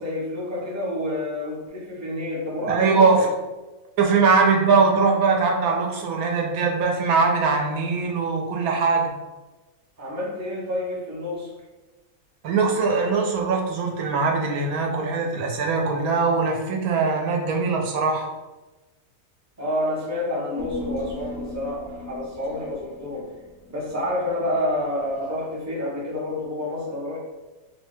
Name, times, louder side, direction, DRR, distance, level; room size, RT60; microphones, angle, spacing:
voice 1, 0.0-3.3 10.0-11.5 19.6-23.3 23.7-27.2, left 1 dB, 20° right, -5 dB, 0.4 m, -28 dB
voice 2, 2.7-3.3 4.0-9.1 12.4-18.3, right 4 dB, 80° right, 1 dB, 1.0 m, -21 dB
Human voice, 20.6-25.2 25.5-25.6, left 1 dB, 65° left, 0.7 m, -38 dB
2.7 x 2.2 x 3.1 m, 1.1 s
omnidirectional pair, 1.6 m